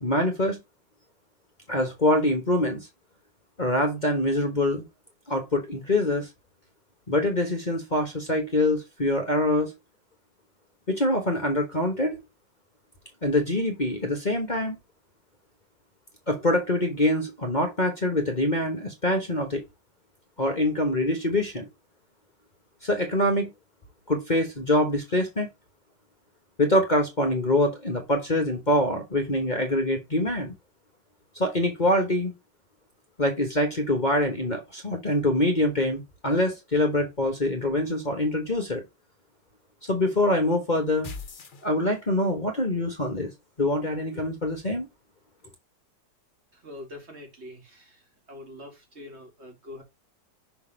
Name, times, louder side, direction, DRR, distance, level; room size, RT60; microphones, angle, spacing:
voice 1, 0.0-0.6 1.7-2.9 3.6-4.8 5.3-6.3 7.1-9.7 10.9-12.2 13.2-14.8 16.3-19.6 20.4-21.7 22.8-23.5 24.1-25.5 26.6-30.5 31.3-32.3 33.2-38.8 39.9-41.1 41.6-43.3 43.6-44.9, left 1 dB, 30° left, 1.2 m, -24 dB
sound 1, 41.0-42.3, left 4 dB, 50° left, 0.6 m, -40 dB
voice 2, 46.6-48.0 48.3-49.8, left 1 dB, 35° right, 2.6 m, -44 dB
6.0 x 4.0 x 5.0 m
omnidirectional pair, 2.0 m